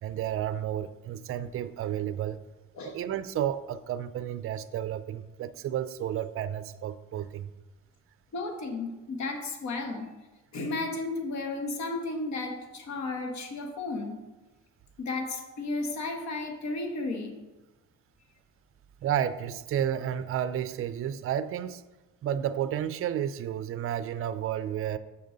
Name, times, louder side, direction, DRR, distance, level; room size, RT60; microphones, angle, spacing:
voice 1, 0.0-2.4 2.8-7.5 19.0-21.8 22.2-25.0, right 10 dB, 45° right, 13 dB, 0.4 m, -31 dB
voice 2, 8.3-10.1 10.5-14.2 15.0-17.4, left 3 dB, 65° left, 4 dB, 1.3 m, -33 dB
6.6 x 5.5 x 3.9 m, 1.1 s
cardioid pair, 90°, 30 cm